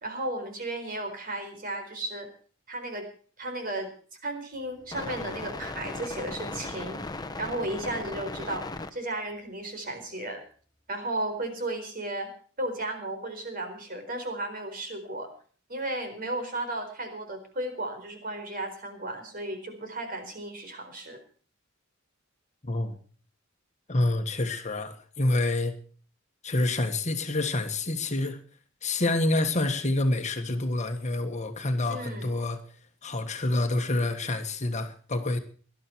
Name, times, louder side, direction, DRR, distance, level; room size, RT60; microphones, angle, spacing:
voice 1, 0.0-2.3 2.7-3.1 3.4-3.9 4.2-7.0 7.4-10.4 10.9-12.3 12.6-15.3 15.7-21.2 31.9-32.3, right 1 dB, 45° right, 4.4 m, -34 dB
sound 1, 4.6-8.9, left 2 dB, 20° left, 1.1 m, -37 dB
voice 2, 22.6-23.0 23.9-25.7 26.4-28.4 28.8-32.6 33.0-35.4, left 2 dB, 35° left, 1.5 m, -27 dB
19.5 x 12.0 x 4.5 m
head